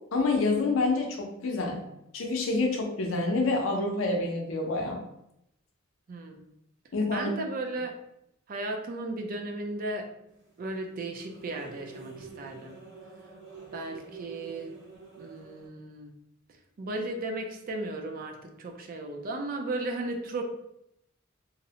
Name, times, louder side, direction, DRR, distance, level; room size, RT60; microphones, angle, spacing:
voice 1, 0.1-1.8 2.1-5.0 6.9-7.3, left 3 dB, 75° left, 2 dB, 0.5 m, -27 dB
voice 2, 6.1-6.4 7.1-8.0 8.5-10.1 10.6-12.8 13.7-14.8 15.2-16.1 16.5-20.4, right 2 dB, 45° right, 3 dB, 0.4 m, -35 dB
sound 1, 10.3-15.7, right 4 dB, 75° right, 1.1 m, -47 dB
2.6 x 2.0 x 2.7 m, 0.81 s
head